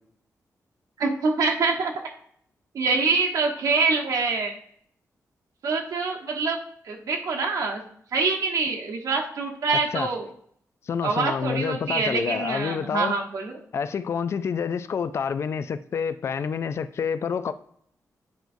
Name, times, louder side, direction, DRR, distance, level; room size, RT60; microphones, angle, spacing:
voice 1, 1.0-1.9 2.7-4.5 5.6-6.6 6.8-7.8 8.1-10.3 11.0-13.6, right 4 dB, 75° right, 1.2 m, -25 dB
voice 2, 10.9-13.1 13.7-17.5, left 6 dB, 50° left, 0.3 m, -28 dB
9.1 x 4.5 x 2.6 m
wide cardioid pair, 165°, 6 cm